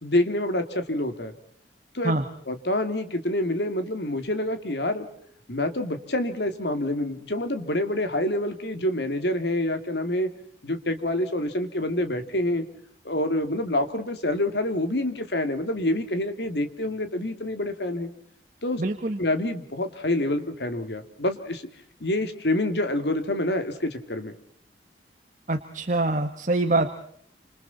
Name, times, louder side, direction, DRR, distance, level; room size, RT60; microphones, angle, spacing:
voice 1, 0.0-1.3 1.9-2.1 2.5-5.1 5.5-10.3 10.6-12.6 13.0-18.1 18.6-18.8 19.2-21.6 22.0-24.3, left 1 dB, 65° left, 8 dB, 2.7 m, -27 dB
voice 2, 18.8-19.2 25.5-26.9, right 2 dB, 45° right, 6 dB, 1.5 m, -24 dB
28.5 x 27.0 x 4.2 m, 0.65 s
head